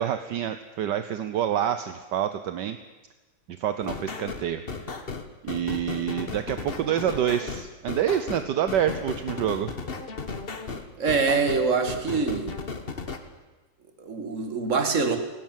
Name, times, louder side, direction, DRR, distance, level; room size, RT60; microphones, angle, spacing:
voice 1, 0.0-2.8 3.5-4.6 4.9-5.1 5.4-9.7, right 10 dB, 70° right, 10 dB, 1.4 m, -27 dB
sound 1, 3.8-13.2, left 4 dB, 35° left, 1.4 m, -35 dB
voice 2, 11.0-12.5 14.0-15.2, right 4 dB, 40° right, 6 dB, 2.2 m, -24 dB
18.0 x 17.5 x 9.1 m, 1.2 s
omnidirectional pair, 2.0 m